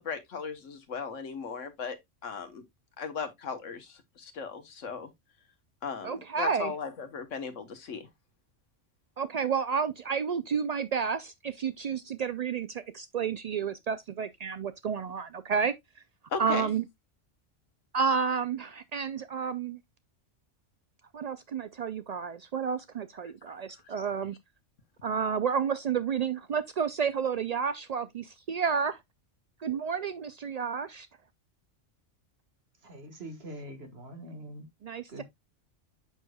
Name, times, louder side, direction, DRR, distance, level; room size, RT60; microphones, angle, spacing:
voice 1, 0.0-2.0 2.2-2.6 3.0-5.1 5.8-8.1 16.3-16.7, left 6 dB, 85° left, 1.5 m, -37 dB
voice 2, 6.0-6.7 9.2-15.7 16.4-16.8 17.9-19.8 21.1-24.4 25.0-29.0 29.6-31.1 34.8-35.2, right 6 dB, 85° right, 0.3 m, -31 dB
voice 3, 32.8-34.7 35.1-35.2, right 1 dB, 55° right, 1.9 m, -43 dB
8.0 x 6.3 x 2.2 m
omnidirectional pair, 1.2 m